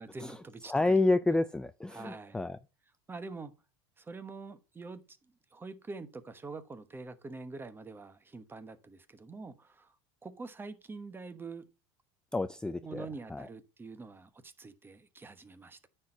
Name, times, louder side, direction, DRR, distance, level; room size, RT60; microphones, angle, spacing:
voice 1, 0.0-0.9 1.9-2.4 3.1-3.5 4.0-5.2 5.5-9.9 10.2-11.7 12.8-15.9, right 3 dB, 15° right, 1.1 m, -45 dB
voice 2, 0.7-2.6 12.3-13.5, left 2 dB, 5° left, 0.4 m, -29 dB
9.3 x 4.5 x 5.2 m
supercardioid pair, 105°, 13 cm